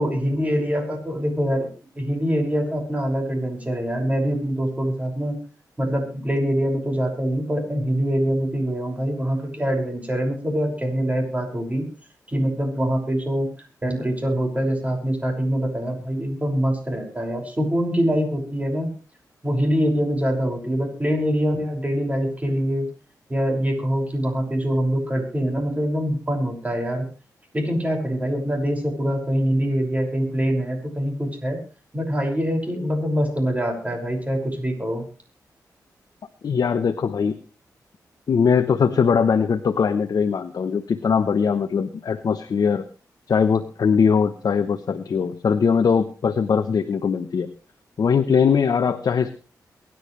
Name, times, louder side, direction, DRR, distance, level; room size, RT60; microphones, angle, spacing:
voice 1, 0.0-5.4 5.8-11.8 12.3-13.5 13.8-18.9 19.4-22.9 23.3-27.1 27.5-31.6 31.9-35.1, equal, 20° right, 2 dB, 5.9 m, -24 dB
voice 2, 36.4-37.4 38.3-42.9 43.3-47.5 48.0-49.3, left 6 dB, 65° left, 8 dB, 0.9 m, -21 dB
23.5 x 10.5 x 3.3 m, 0.37 s
cardioid pair, 70°, 7 cm